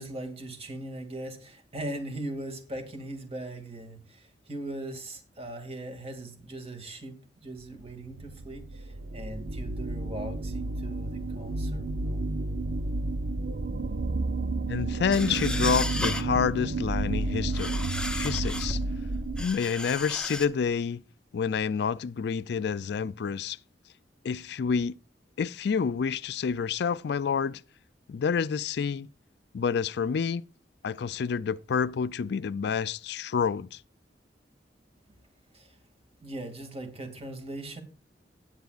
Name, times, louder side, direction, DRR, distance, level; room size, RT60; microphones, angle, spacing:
voice 1, 0.0-12.3 35.5-35.8 36.2-37.8, right 1 dB, 35° right, 2.3 m, -40 dB
sound 1, 7.8-19.4, right 2 dB, 70° right, 0.7 m, -31 dB
voice 2, 14.7-17.9 18.1-18.8 19.4-21.0 21.3-23.6 24.2-25.0 25.4-27.6 28.1-29.1 29.5-30.4 30.8-33.8, left 6 dB, 70° left, 0.4 m, -28 dB
sound 2, 15.1-16.3 17.3-18.9 19.4-20.5, left 2 dB, 5° left, 0.9 m, -34 dB
18.5 x 8.1 x 2.4 m
head